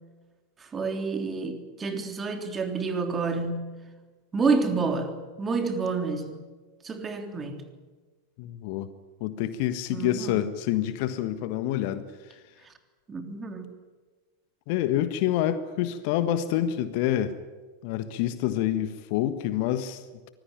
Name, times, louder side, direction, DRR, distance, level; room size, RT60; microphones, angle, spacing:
voice 1, 0.6-3.6 4.3-6.3 6.8-7.6 9.9-10.4 12.6-12.7 13.1-13.7, right 4 dB, 20° right, 6 dB, 3.4 m, -29 dB
voice 2, 8.4-8.9 9.2-12.4 14.7-17.4 17.8-20.3, left 12 dB, 45° left, 12 dB, 1.4 m, -27 dB
24.5 x 20.5 x 9.3 m, 1.3 s
figure-of-eight pair, 90°, 0 cm